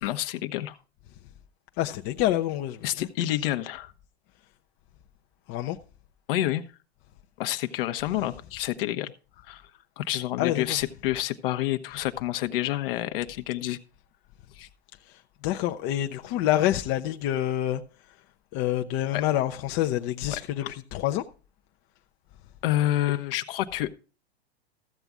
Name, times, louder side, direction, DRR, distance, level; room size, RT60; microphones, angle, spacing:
voice 1, 0.0-0.8 2.8-3.9 6.3-6.6 7.4-9.1 9.4-9.7 10.0-13.8 14.5-14.7 19.1-19.2 20.3-20.7 22.6-23.9, left 14 dB, 60° left, 1.1 m, -28 dB
voice 2, 1.8-3.1 5.5-5.8 10.4-10.8 15.1-17.8 18.5-21.2, left 13 dB, 40° left, 0.8 m, -27 dB
14.5 x 7.9 x 3.7 m
hypercardioid pair, 95°, 32 cm